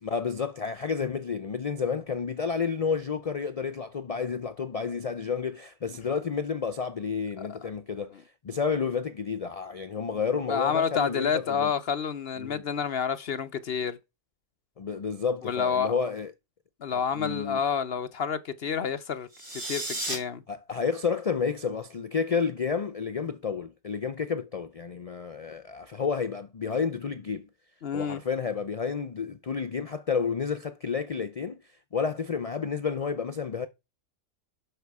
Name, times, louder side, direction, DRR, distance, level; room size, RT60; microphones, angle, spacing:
voice 1, 0.0-11.7 12.4-12.6 14.8-16.3 16.9-17.6 20.5-27.5 27.9-31.6 31.9-33.7, left 5 dB, 70° left, 0.3 m, -30 dB
voice 2, 10.5-14.0 15.4-15.9 16.8-19.3 19.5-20.4 27.8-28.2, left 6 dB, 55° left, 0.8 m, -29 dB
sound 1, 19.3-20.2, right 1 dB, 50° right, 3.5 m, -33 dB
11.5 x 5.1 x 4.7 m
omnidirectional pair, 1.4 m